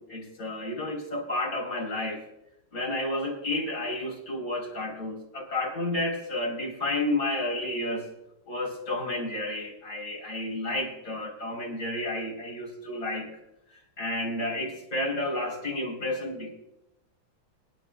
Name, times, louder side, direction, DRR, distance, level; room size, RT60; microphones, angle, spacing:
voice 1, 0.0-2.2 2.7-8.1 8.5-13.3 14.0-16.5, left 1 dB, 40° left, -1 dB, 4.1 m, -31 dB
26.5 x 9.9 x 2.2 m, 0.91 s
omnidirectional pair, 2.1 m